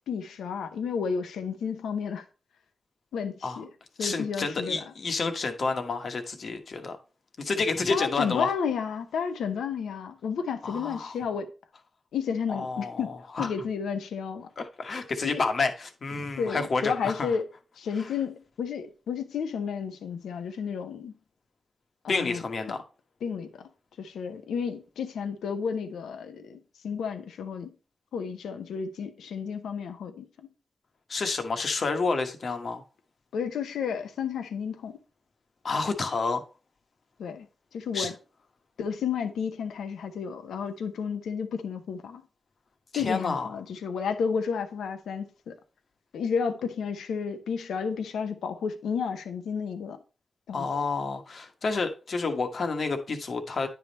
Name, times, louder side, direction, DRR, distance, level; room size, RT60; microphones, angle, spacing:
voice 1, 0.1-2.2 3.1-3.7 4.0-4.8 7.9-11.5 12.1-14.5 15.2-15.4 16.4-17.4 17.8-21.1 22.0-22.4 23.2-23.7 24.0-27.7 28.1-30.5 33.3-35.0 37.2-37.5 37.7-38.1 38.8-42.2 42.9-45.6 46.1-50.0 50.5-50.7, left 6 dB, 90° left, 0.7 m, -32 dB
voice 2, 4.0-7.0 7.4-8.5 10.6-11.1 12.5-13.1 13.4-13.5 14.6-17.3 18.0-18.1 22.1-22.8 31.1-32.8 35.6-36.4 37.9-38.1 42.9-43.5 50.5-53.7, left 4 dB, 65° left, 1.2 m, -29 dB
9.7 x 3.5 x 4.1 m
supercardioid pair, 45°, 0 cm